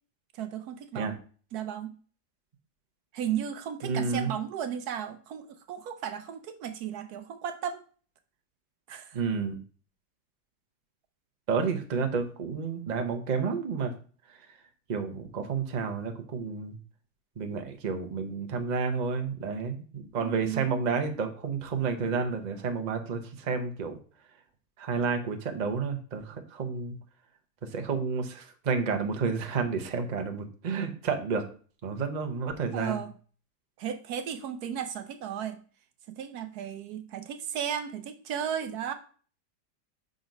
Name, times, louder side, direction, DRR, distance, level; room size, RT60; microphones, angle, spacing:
voice 1, 0.3-1.2 1.5-2.0 3.1-7.8 8.9-9.2 20.2-20.7 32.7-33.1 33.8-35.6 36.1-38.9, right 9 dB, 70° right, 10 dB, 1.1 m, -35 dB
voice 2, 3.8-4.3 9.1-9.6 11.5-13.9 14.9-16.8 17.4-24.0 24.8-26.9 27.7-31.4 31.8-33.0, right 5 dB, 35° right, 6 dB, 0.7 m, -30 dB
5.9 x 4.0 x 5.2 m, 0.41 s
omnidirectional pair, 1.8 m